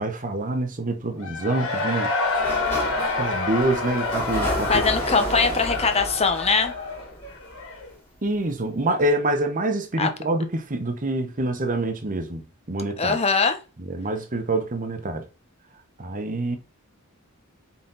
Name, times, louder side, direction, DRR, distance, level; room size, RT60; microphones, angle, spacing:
voice 1, 0.0-2.1 3.2-4.8 8.2-13.2 13.8-15.3 16.0-16.6, right 2 dB, 40° right, 1.0 m, -26 dB
Cheering / Crowd, 1.2-7.9, left 3 dB, 65° left, 2.3 m, -28 dB
Sliding door, 2.2-7.9, equal, 10° left, 2.9 m, -32 dB
voice 2, 4.7-6.7 10.0-10.1 13.0-13.6, left 4 dB, 30° left, 1.1 m, -21 dB
8.3 x 4.2 x 4.0 m
head